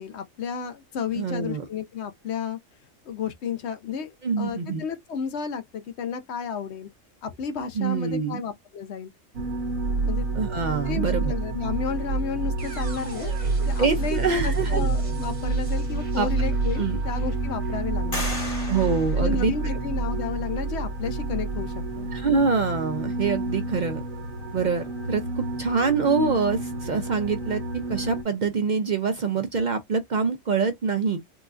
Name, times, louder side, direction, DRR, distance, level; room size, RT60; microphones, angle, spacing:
voice 1, 0.0-2.6 3.0-6.9 7.2-9.1 10.0-10.2 10.9-13.3 13.7-18.3 19.2-22.1, left 6 dB, 65° left, 0.8 m, -32 dB
voice 2, 1.2-1.7 4.2-4.8 7.8-8.4 10.4-11.3 13.8-14.9 16.1-16.3 16.8-17.0 18.7-19.5 22.1-24.0 24.5-27.6 27.9-31.2, right 5 dB, 55° right, 0.5 m, -25 dB
sound 1, 9.3-28.2, right 3 dB, 85° right, 1.3 m, -28 dB
sound 2, 12.6-20.5, equal, 30° right, 0.8 m, -42 dB
sound 3, 15.9-16.0 16.5-17.2 18.1-20.1, left 1 dB, 45° left, 2.1 m, -36 dB
3.9 x 2.3 x 2.4 m
omnidirectional pair, 1.4 m